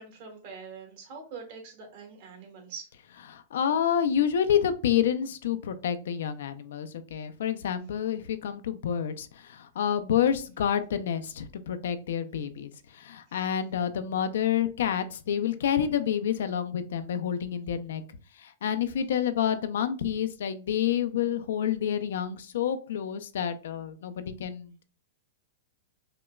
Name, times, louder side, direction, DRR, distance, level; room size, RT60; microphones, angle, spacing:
voice 1, 0.0-2.8, right 5 dB, 50° right, 1 dB, 1.5 m, -44 dB
voice 2, 3.3-18.0 18.3-24.8, left 9 dB, 75° left, 10 dB, 0.4 m, -28 dB
4.9 x 2.2 x 2.3 m, 0.37 s
supercardioid pair, 150°, 0 cm